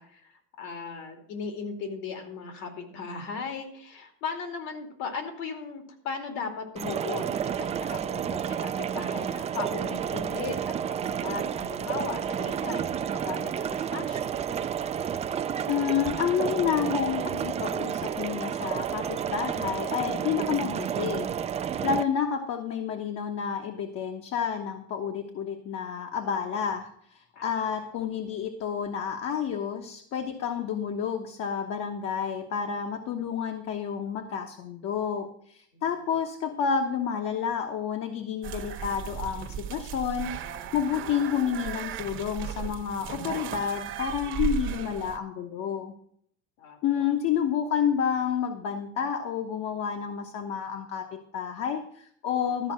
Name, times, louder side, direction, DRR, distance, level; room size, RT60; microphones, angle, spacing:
voice 1, 0.0-14.4 27.3-27.5 35.7-36.1 46.6-47.1, left 5 dB, 75° left, 5 dB, 2.6 m, -37 dB
sound 1, 6.8-22.0, right 8 dB, 20° right, 0.4 m, -31 dB
voice 2, 15.7-21.3 21.8-40.4 40.7-45.9 46.8-52.7, left 7 dB, 55° left, 4 dB, 1.2 m, -30 dB
sound 2, 38.4-45.2, right 10 dB, 40° right, 1.1 m, -36 dB
13.0 x 5.4 x 7.4 m, 0.65 s
cardioid pair, 155°, 29 cm